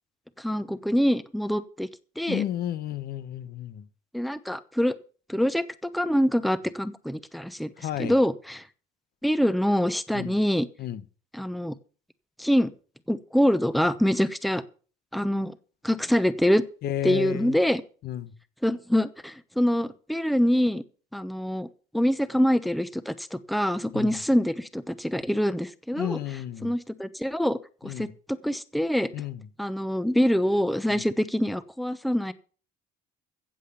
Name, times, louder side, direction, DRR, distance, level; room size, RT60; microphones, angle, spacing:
voice 1, 0.4-1.9 2.2-2.4 4.1-5.0 5.3-7.7 8.0-8.6 9.2-10.7 11.3-11.7 12.4-12.7 13.1-14.6 15.1-15.5 15.8-16.6 17.0-17.8 18.6-20.8 21.1-21.7 21.9-26.2 26.6-29.1 29.6-32.3, equal, ahead, 0.9 m, -25 dB
voice 2, 2.3-3.9 7.8-8.2 10.1-10.4 10.8-11.0 16.8-17.6 18.0-18.3 23.9-24.2 25.9-26.7 27.8-28.1 29.1-29.5 30.9-31.1, left 11 dB, 70° left, 1.0 m, -32 dB
15.5 x 7.6 x 6.8 m
cardioid pair, 110°, 17 cm